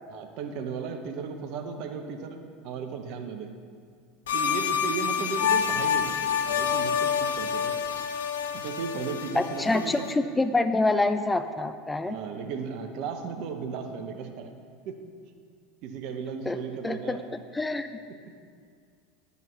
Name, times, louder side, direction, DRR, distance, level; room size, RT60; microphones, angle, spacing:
voice 1, 0.1-2.4 2.6-3.5 4.3-7.7 8.5-10.2 12.1-14.5 14.9-15.0 15.8-17.2 18.1-18.2, right 6 dB, 55° right, 6 dB, 0.8 m, -35 dB
sound 1, 4.3-10.1, left 8 dB, 75° left, 0.5 m, -28 dB
voice 2, 9.4-12.2 16.5-16.6 16.8-17.2 17.5-17.9, left 2 dB, 10° left, 10 dB, 0.3 m, -26 dB
10.5 x 8.0 x 3.1 m, 2.2 s
hypercardioid pair, 80°, 0 cm